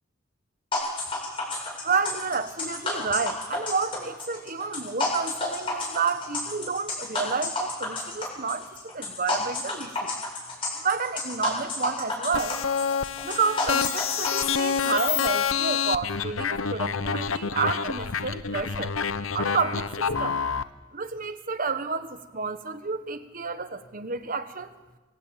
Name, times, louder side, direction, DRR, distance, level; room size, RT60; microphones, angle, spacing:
sound 1, 0.7-14.4, left 2 dB, 25° left, 7.8 m, -30 dB
voice 1, 1.5-10.1 10.6-12.6 13.2-18.9 19.3-20.4 20.9-24.7, right 5 dB, 40° right, 10 dB, 1.3 m, -30 dB
sound 2, 12.3-20.6, left 6 dB, 80° left, 0.9 m, -27 dB
25.0 x 14.0 x 8.8 m, 1.2 s
head